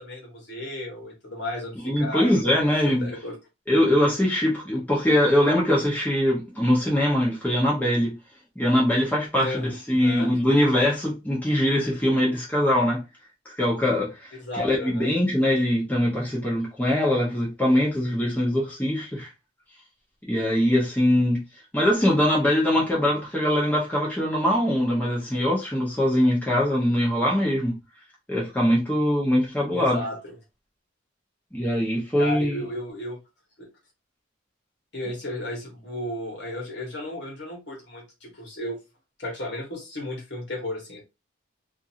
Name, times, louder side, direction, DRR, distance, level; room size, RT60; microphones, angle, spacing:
voice 1, 0.0-3.4 9.4-9.7 10.0-10.3 14.4-15.1 29.7-30.3 32.2-33.2 33.6-33.7 34.9-38.8 39.2-41.0, left 1 dB, 55° left, 1.1 m, -34 dB
voice 2, 1.8-3.1 3.7-8.2 8.6-13.0 13.5-19.3 20.3-21.4 21.7-27.8 28.3-30.0 31.5-32.6, left 1 dB, 10° left, 0.7 m, -22 dB
2.6 x 2.5 x 2.7 m
head